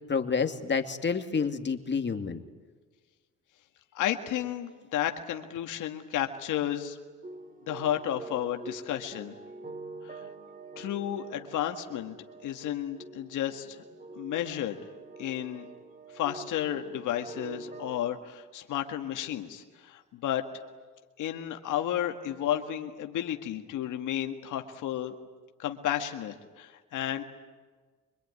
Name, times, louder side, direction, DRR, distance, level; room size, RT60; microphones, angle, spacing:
voice 1, 0.1-2.4, left 5 dB, 35° left, 6 dB, 2.4 m, -29 dB
voice 2, 3.9-7.0 7.7-9.4 10.0-10.2 10.8-12.2 12.4-13.8 14.2-14.8 15.2-15.7 16.1-20.4 21.2-25.1 25.6-27.2, left 11 dB, 85° left, 5 dB, 1.8 m, -32 dB
sound 1, 7.2-18.1, right 2 dB, 25° right, 3.3 m, -46 dB
25.0 x 24.5 x 9.7 m, 1.4 s
cardioid pair, 90°, 30 cm